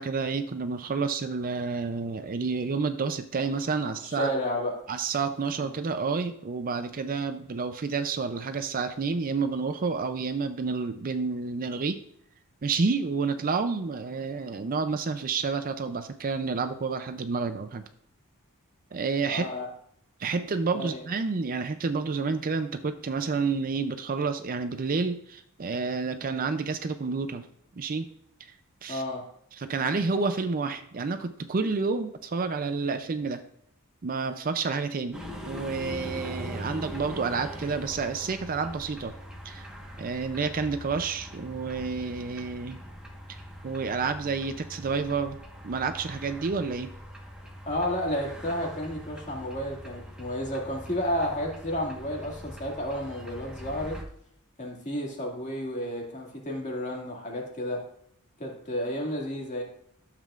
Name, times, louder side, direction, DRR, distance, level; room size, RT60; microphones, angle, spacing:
voice 1, 0.0-4.3 4.9-12.0 12.6-17.8 18.9-19.5 20.2-27.5 27.8-28.1 28.4-28.5 28.8-29.0 29.6-33.4 34.0-39.1 39.4-39.7 40.0-42.8 43.3-43.4 43.6-45.4 45.6-46.9, right 4 dB, 40° right, 8 dB, 0.5 m, -29 dB
voice 2, 3.8-4.8 5.6-5.7 19.2-19.7 20.8-21.0 28.9-29.3 47.7-54.0 54.6-57.8 58.4-59.6, equal, 35° left, -1 dB, 2.1 m, -31 dB
sound 1, 35.1-54.0, equal, 5° right, 1.3 m, -42 dB
12.5 x 7.4 x 2.5 m, 0.69 s
head